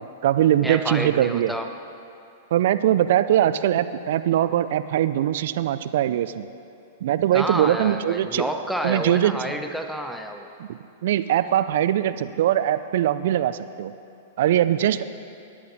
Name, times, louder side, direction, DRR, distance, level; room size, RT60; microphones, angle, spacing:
voice 1, 0.0-1.5 2.5-6.5 7.0-8.5 8.8-9.4 10.6-13.9 14.4-15.1, right 11 dB, 60° right, 13 dB, 0.5 m, -22 dB
voice 2, 0.6-1.7 7.3-10.5, equal, ahead, 5 dB, 1.0 m, -29 dB
15.0 x 11.0 x 4.1 m, 2.7 s
hypercardioid pair, 105°, 0 cm